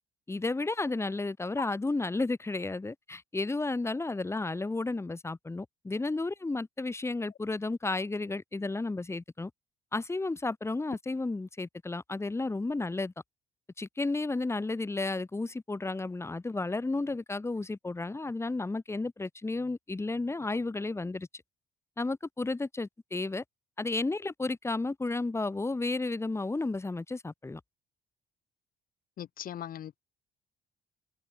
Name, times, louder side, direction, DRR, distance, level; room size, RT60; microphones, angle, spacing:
voice 1, 0.3-9.5 9.9-13.1 13.8-21.3 22.0-23.4 23.8-27.6, left 3 dB, 15° left, 6.2 m, -32 dB
voice 2, 29.2-30.0, left 10 dB, 55° left, 7.9 m, -40 dB
cardioid pair, 110°, 17 cm